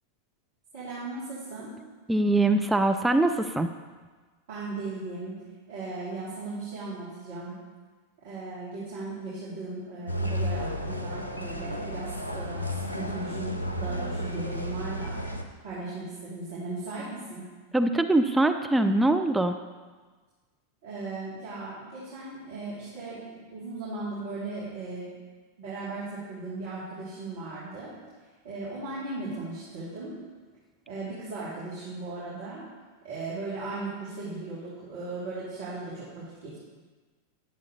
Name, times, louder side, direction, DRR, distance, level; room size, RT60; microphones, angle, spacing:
voice 1, 0.7-1.7 4.5-5.4 5.7-7.5 8.2-12.6 12.9-15.2 15.6-17.4 20.8-25.1 25.6-27.9 28.4-30.1 30.9-32.6 33.0-36.6, right 3 dB, 50° right, -11 dB, 3.0 m, -37 dB
voice 2, 2.1-3.7 17.7-19.6, right 2 dB, 5° right, 6 dB, 0.4 m, -23 dB
sound 1, 10.1-15.4, equal, 80° left, 0.8 m, -32 dB
10.5 x 7.5 x 4.0 m, 1.4 s
figure-of-eight pair, 90°, 0 cm